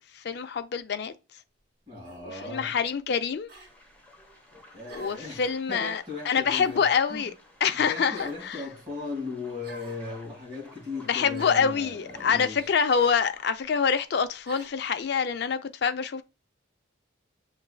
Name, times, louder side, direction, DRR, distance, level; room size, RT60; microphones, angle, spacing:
voice 1, 0.1-1.4 2.3-3.5 4.9-7.3 7.6-8.6 11.1-16.2, left 6 dB, 55° left, 0.4 m, -26 dB
voice 2, 1.9-2.7 4.5-7.3 7.9-12.7, left 3 dB, 30° right, 1.8 m, -38 dB
sound 1, 2.1-2.3 3.5-3.7 4.9-5.3 6.5-6.9 8.1-8.5 9.6-10.1 11.3-11.7 12.9-13.2 14.5-14.8, right 2 dB, 50° right, 1.9 m, -46 dB
sound 2, 3.6-13.6, left 1 dB, 10° left, 0.8 m, -55 dB
6.7 x 3.1 x 2.2 m
head